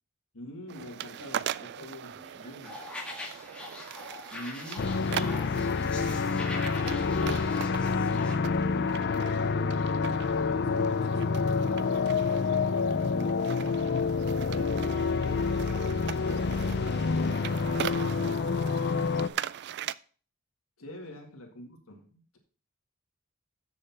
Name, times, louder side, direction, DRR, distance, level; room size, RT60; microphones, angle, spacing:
voice 1, 0.3-2.8 4.3-6.5 6.8-10.0 10.3-12.4 12.7-14.8 15.2-16.9 20.8-22.4, left 1 dB, 70° left, 1.9 m, -44 dB
sound 1, 0.7-19.9, right 10 dB, 50° right, 0.3 m, -40 dB
voice 2, 1.1-1.6 2.0-2.9 17.6-19.6 20.9-21.2, right 2 dB, 30° right, 2.5 m, -58 dB
sound 2, 2.6-8.3, left 2 dB, 5° left, 1.6 m, -42 dB
sound 3, 4.8-19.3, left 4 dB, 50° left, 0.4 m, -28 dB
7.7 x 6.8 x 5.6 m
head